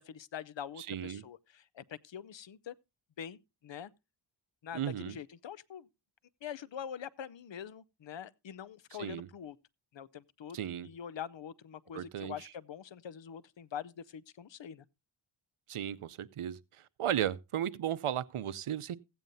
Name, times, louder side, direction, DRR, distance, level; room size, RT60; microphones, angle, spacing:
voice 1, 0.0-2.7 3.2-3.9 4.6-5.9 6.4-9.6 9.9-14.8, left 8 dB, 65° left, 0.7 m, -44 dB
voice 2, 0.8-1.2 4.7-5.2 9.0-9.3 10.5-10.9 11.9-12.5 15.7-16.6 17.0-19.0, right 10 dB, 85° right, 0.7 m, -35 dB
15.5 x 9.1 x 2.6 m
wide cardioid pair, 65°, 49 cm